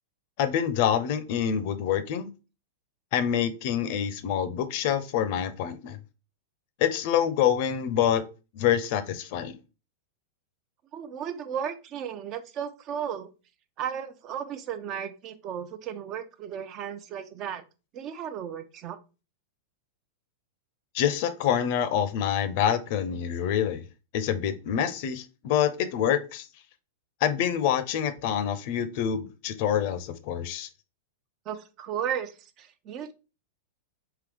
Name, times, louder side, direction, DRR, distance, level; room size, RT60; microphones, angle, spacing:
voice 1, 0.4-2.3 3.1-6.0 6.8-8.2 8.5-9.6 20.9-23.8 24.1-26.5 27.2-30.7, left 9 dB, 55° left, 12 dB, 0.5 m, -26 dB
voice 2, 10.9-13.3 13.8-17.6 17.9-19.0 31.5-33.1, right 8 dB, 40° right, 10 dB, 0.5 m, -35 dB
3.7 x 2.8 x 3.4 m, 0.31 s
hypercardioid pair, 105°, 0 cm